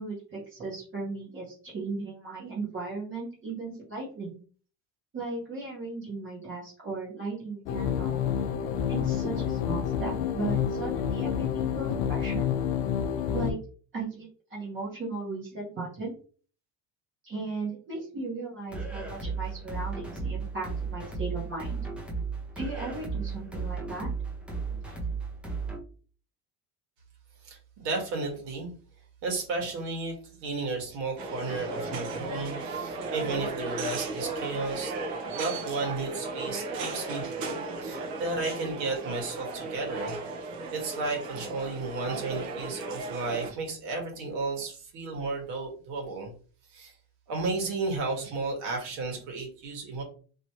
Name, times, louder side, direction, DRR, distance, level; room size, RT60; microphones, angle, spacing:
voice 1, 0.0-4.4 5.1-8.2 8.9-12.5 13.3-13.6 13.9-16.1 17.2-21.8 22.5-24.1 24.8-25.0, right 3 dB, 30° right, -5 dB, 1.1 m, -36 dB
sound 1, 7.7-13.5, left 8 dB, 70° left, 0.5 m, -28 dB
sound 2, 18.7-25.8, right 4 dB, 5° right, 0.3 m, -34 dB
voice 2, 27.4-28.7 29.2-34.9 35.3-40.1 40.7-46.3 46.7-46.9 47.3-50.0, right 3 dB, 80° right, 1 dB, 1.6 m, -33 dB
sound 3, 31.2-43.5, right 3 dB, 60° right, 0.9 m, -35 dB
3.0 x 2.9 x 2.8 m, 0.40 s
cardioid pair, 170°, 40 cm